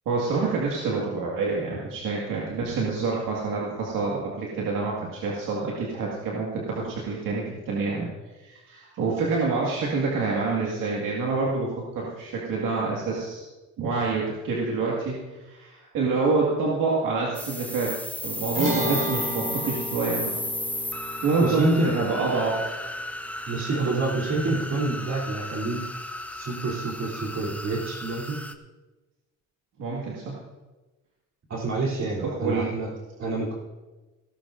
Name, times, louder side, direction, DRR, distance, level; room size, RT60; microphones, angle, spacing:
voice 1, 0.1-13.4 13.8-17.9 18.2-20.4 20.7-20.8 21.2-22.8 29.8-30.4 32.2-32.7, right 4 dB, 85° right, -3 dB, 2.0 m, -27 dB
sound 1, 17.3-28.5, left 1 dB, 5° left, 0.7 m, -34 dB
sound 2, 18.5-25.1, left 1 dB, 25° right, 3.7 m, -35 dB
voice 2, 21.4-21.9 23.5-25.8 26.3-28.4 31.5-32.9 33.2-33.6, right 2 dB, 55° right, -4 dB, 3.3 m, -28 dB
17.0 x 13.5 x 2.6 m, 1.2 s
cardioid pair, 100°, 32 cm